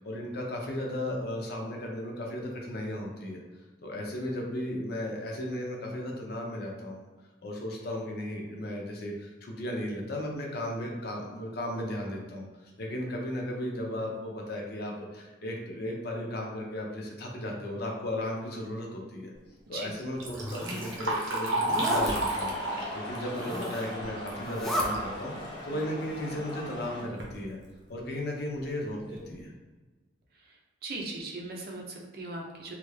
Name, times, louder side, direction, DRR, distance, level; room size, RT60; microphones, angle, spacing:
voice 1, 0.0-3.4 3.8-7.0 7.4-19.3 19.7-27.6 27.9-29.5, left 1 dB, 55° left, 0 dB, 0.7 m, -35 dB
Liquid, 20.0-25.1 25.5-25.6 26.5-26.6 27.0-27.3 27.9-28.0 28.5-28.6 29.1-29.3, right 1 dB, 90° right, 0.8 m, -32 dB
Zipper (clothing), 20.2-21.0 21.6-22.1 23.2-23.9 24.4-24.9, equal, ahead, 0.4 m, -33 dB
sound 1, 21.9-27.0, left 1 dB, 25° left, 0.7 m, -40 dB
voice 2, 30.8-32.7, right 2 dB, 55° right, 0 dB, 0.6 m, -38 dB
3.2 x 2.4 x 3.2 m, 1.3 s
head